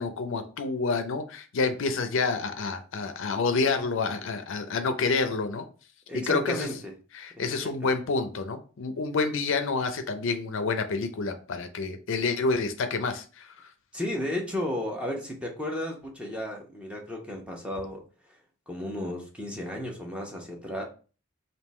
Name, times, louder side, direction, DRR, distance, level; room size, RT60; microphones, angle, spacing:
voice 1, 0.0-5.7 6.1-6.7 7.1-13.7, left 4 dB, 65° left, 8 dB, 0.5 m, -28 dB
voice 2, 6.1-6.9 7.3-7.9 13.9-18.0 18.7-20.8, left 1 dB, 5° right, 0 dB, 0.8 m, -34 dB
3.6 x 2.7 x 4.2 m, 0.37 s
head